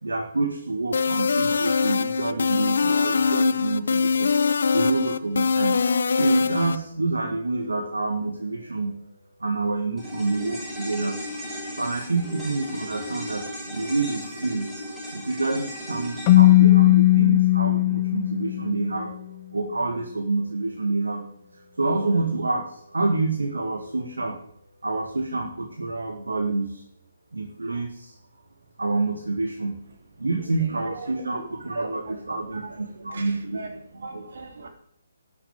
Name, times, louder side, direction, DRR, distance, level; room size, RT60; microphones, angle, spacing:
voice 1, 0.0-4.3 4.7-5.8 6.2-9.0 9.4-11.2 11.8-14.7 15.1-19.1 19.5-24.4 24.8-26.8 27.3-28.1 28.8-29.8 30.2-33.6 34.1-34.2, right 3 dB, 70° right, 3 dB, 1.8 m, -27 dB
sound 1, 0.9-6.8, left 5 dB, 60° left, 0.7 m, -23 dB
sound 2, 10.0-18.5 18.7-18.8, left 1 dB, 5° right, 5.9 m, -37 dB
Keyboard (musical), 16.3-19.0, left 18 dB, 25° left, 0.4 m, -17 dB
voice 2, 30.5-34.7, right 3 dB, 55° right, 4 dB, 3.2 m, -40 dB
11.5 x 7.2 x 8.9 m, 0.69 s
figure-of-eight pair, 140°, 0 cm